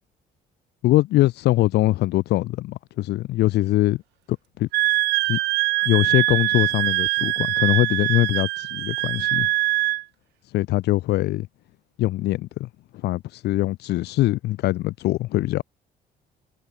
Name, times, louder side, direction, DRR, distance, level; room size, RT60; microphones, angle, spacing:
voice 1, 0.8-4.0 4.6-4.7 5.3-5.4 5.8-9.5 10.5-11.5 12.0-12.7 13.0-15.6, left 16 dB, 80° left, 4.3 m, -22 dB
Wind instrument woodwind instrument, 4.7-10.0, right 20 dB, 90° right, 6.3 m, -23 dB
cardioid pair, 110°, 17 cm